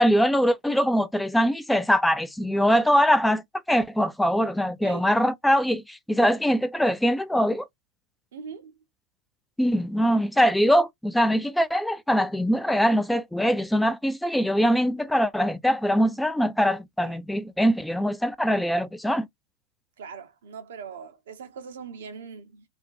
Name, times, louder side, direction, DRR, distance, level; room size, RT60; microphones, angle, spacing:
voice 1, 0.0-3.4 3.7-7.7 9.6-19.3, equal, 5° left, 0.3 m, -22 dB
voice 2, 8.3-8.7 17.0-17.2 20.0-22.6, right 6 dB, 60° right, 0.6 m, -41 dB
2.4 x 2.1 x 2.5 m
figure-of-eight pair, 90°, 0 cm